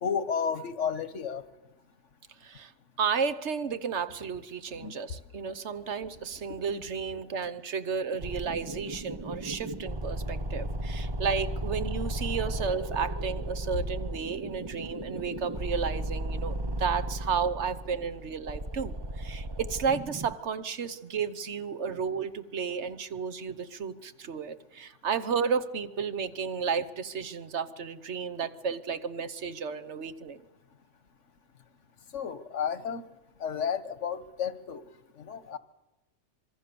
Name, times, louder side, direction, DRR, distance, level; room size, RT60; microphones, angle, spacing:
voice 1, 0.0-1.4 4.8-4.9 32.1-33.0 33.4-34.8 35.2-35.6, left 7 dB, 90° left, 14 dB, 1.5 m, -32 dB
voice 2, 2.4-2.7 3.0-30.4, right 6 dB, 70° right, 12 dB, 1.3 m, -32 dB
sound 1, 8.2-20.4, right 1 dB, 25° right, 0.9 m, -35 dB
26.0 x 22.5 x 6.9 m, 1.1 s
omnidirectional pair, 1.2 m